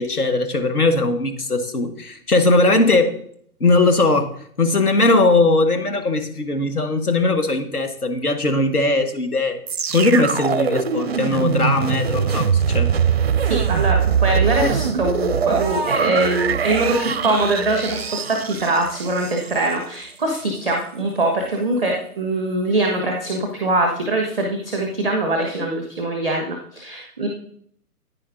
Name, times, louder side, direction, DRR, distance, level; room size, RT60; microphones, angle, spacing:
voice 1, 0.0-3.1 3.6-4.3 4.6-9.6 9.9-12.9, left 2 dB, 75° left, 7 dB, 1.5 m, -19 dB
sound 1, 9.7-19.7 20.3-20.4, right 7 dB, 45° right, 0.4 m, -22 dB
voice 2, 13.4-27.3, right 2 dB, 5° left, 2 dB, 0.5 m, -22 dB
9.8 x 9.5 x 2.6 m, 0.63 s
figure-of-eight pair, 135°, 45 cm